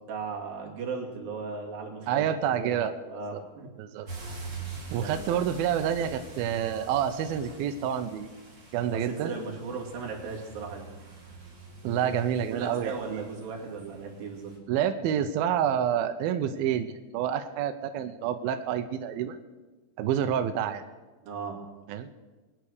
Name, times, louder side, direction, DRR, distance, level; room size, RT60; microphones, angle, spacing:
voice 1, 0.1-2.8 3.1-3.7 4.9-5.4 8.9-10.9 11.9-12.2 12.5-14.5 21.2-21.6, right 4 dB, 65° right, -1 dB, 4.2 m, -37 dB
voice 2, 2.1-2.9 3.3-3.4 3.8-4.1 4.9-8.3 8.7-9.3 11.8-13.2 14.7-19.4 20.0-20.8 21.9-22.1, right 9 dB, 80° right, 8 dB, 2.4 m, -28 dB
sound 1, 4.1-14.6, right 4 dB, 35° right, 4.0 m, -45 dB
23.0 x 9.0 x 6.5 m, 1.3 s
omnidirectional pair, 4.6 m